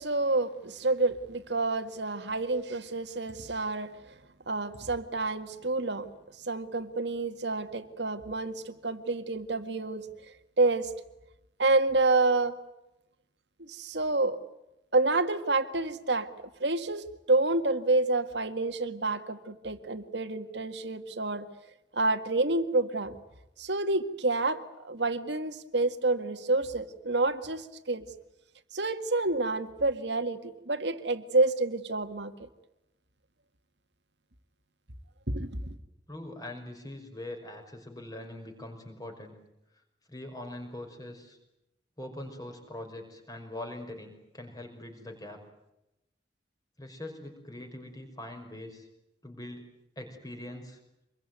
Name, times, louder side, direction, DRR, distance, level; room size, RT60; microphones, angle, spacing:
voice 1, 0.0-4.0 4.5-6.1 6.4-10.1 10.6-10.9 11.6-12.6 13.6-14.4 14.9-16.3 16.6-21.5 21.9-23.2 23.6-28.1 28.7-30.4 30.7-32.5 35.3-35.6, right 2 dB, 70° right, 9 dB, 1.9 m, -28 dB
voice 2, 36.1-39.3 40.1-41.4 42.0-45.4 46.8-48.9 49.2-49.7 50.0-50.8, left 1 dB, 20° left, 4 dB, 5.7 m, -42 dB
26.0 x 22.5 x 9.3 m, 0.89 s
head